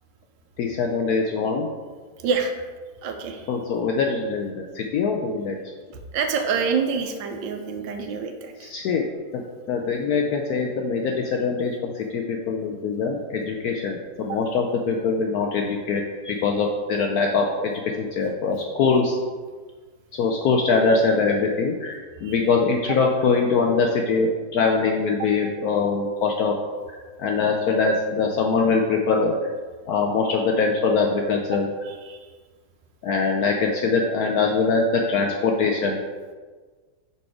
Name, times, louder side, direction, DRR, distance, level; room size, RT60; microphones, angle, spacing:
voice 1, 0.6-1.7 3.5-5.6 8.6-9.0 9.3-9.4 9.7-19.2 20.1-26.5 27.2-29.3 29.9-31.7 33.0-36.0, left 4 dB, 75° left, 1 dB, 0.8 m, -23 dB
voice 2, 2.2-2.5 3.0-3.5 6.1-8.7 14.3-14.4 22.2-22.4 22.9-23.0 25.2-25.3 31.5-31.6 31.9-32.3, right 5 dB, 80° right, 5 dB, 1.3 m, -27 dB
5.4 x 4.2 x 4.7 m, 1.4 s
omnidirectional pair, 2.1 m